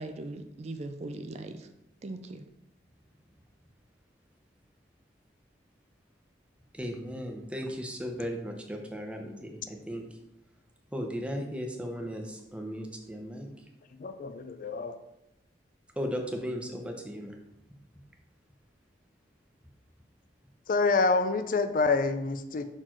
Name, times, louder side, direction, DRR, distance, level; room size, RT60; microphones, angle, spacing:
voice 1, 0.0-1.7 2.0-2.5, right 2 dB, 35° right, 7 dB, 0.4 m, -39 dB
voice 2, 6.7-10.1 10.9-13.5 16.0-17.3, equal, 5° right, 2 dB, 0.8 m, -36 dB
voice 3, 14.0-15.0 20.7-22.7, left 3 dB, 50° left, 9 dB, 0.4 m, -27 dB
5.9 x 4.5 x 4.4 m, 0.87 s
head